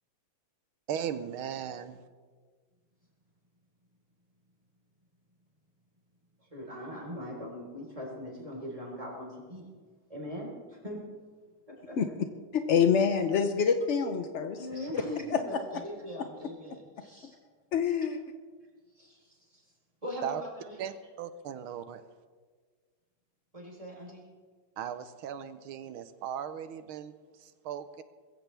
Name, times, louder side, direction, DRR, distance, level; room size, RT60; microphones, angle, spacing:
voice 1, 0.9-2.0 20.2-20.4 20.8-22.0 24.8-27.1 27.4-28.0, right 9 dB, 90° right, 11 dB, 1.7 m, -37 dB
voice 2, 6.5-9.7 10.1-11.1 11.7-12.0 14.6-17.4 18.9-19.6 20.0-20.8 23.5-24.2, equal, 15° right, -2 dB, 4.3 m, -41 dB
voice 3, 12.5-14.6 15.3-15.4 15.7-15.8 16.2-16.3 17.7-18.2, left 7 dB, 65° left, 7 dB, 0.7 m, -26 dB
22.0 x 15.5 x 3.4 m, 1.5 s
omnidirectional pair, 2.3 m